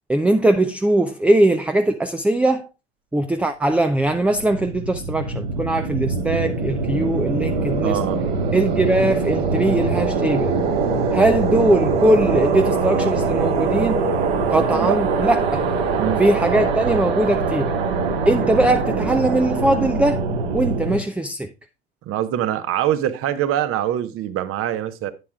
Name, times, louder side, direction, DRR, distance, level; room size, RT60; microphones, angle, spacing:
voice 1, 0.1-2.7 3.1-8.0 8.5-10.6 11.1-14.0 14.5-15.6 16.2-17.7 18.3-20.2 20.5-21.5, right 1 dB, 5° right, 0.5 m, -20 dB
sound 1, 3.9-21.0, right 4 dB, 65° right, 2.6 m, -23 dB
voice 2, 7.8-8.2 14.7-15.0 16.0-16.2 22.1-25.1, right 11 dB, 45° right, 1.0 m, -24 dB
11.0 x 8.6 x 2.4 m
figure-of-eight pair, 75°, 32 cm